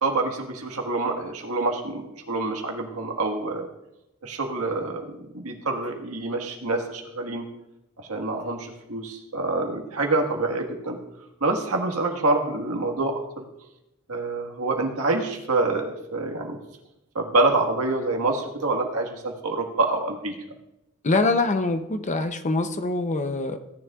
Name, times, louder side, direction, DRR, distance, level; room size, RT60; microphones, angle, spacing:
voice 1, 0.0-3.7 4.2-7.4 8.0-11.0 11.4-13.4 14.1-16.6 17.1-20.3, right 2 dB, 85° right, 2 dB, 1.7 m, -26 dB
voice 2, 21.0-23.6, left 3 dB, 35° left, 9 dB, 0.7 m, -24 dB
17.0 x 10.0 x 2.4 m, 0.91 s
head